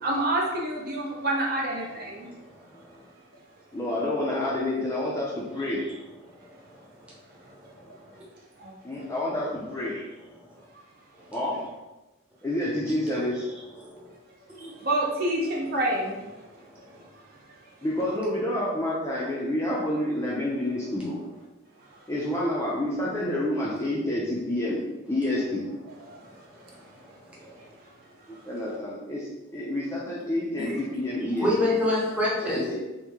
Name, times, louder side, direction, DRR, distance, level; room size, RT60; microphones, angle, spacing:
voice 1, 0.0-2.3 8.6-8.7 14.6-16.2 26.1-26.2 27.4-27.5, right 1 dB, 50° right, -3 dB, 0.7 m, -27 dB
voice 2, 3.7-5.9 8.8-10.1 11.3-11.6 12.4-13.4 17.8-21.2 22.1-24.8 25.1-25.6 28.5-31.5 32.4-32.7, left 1 dB, 15° left, -5 dB, 0.4 m, -28 dB
voice 3, 13.8-14.1 14.6-14.7 26.7-26.8 31.4-32.6, left 1 dB, 5° right, -6 dB, 0.8 m, -26 dB
3.0 x 2.6 x 3.5 m, 1.1 s
head